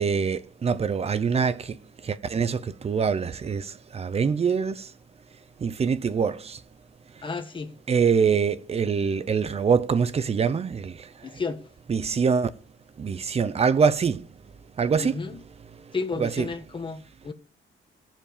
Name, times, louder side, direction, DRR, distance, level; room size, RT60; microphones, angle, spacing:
voice 1, 0.0-4.9 5.6-6.6 7.2-7.3 7.9-11.4 11.9-12.5 13.0-14.3 14.8-15.2 15.7-16.5, right 6 dB, 30° right, 0.8 m, -25 dB
voice 2, 7.2-7.7 11.2-11.6 15.0-15.4 15.9-17.3, left 4 dB, 25° left, 1.5 m, -32 dB
15.5 x 7.5 x 5.1 m
cardioid pair, 155°, 21 cm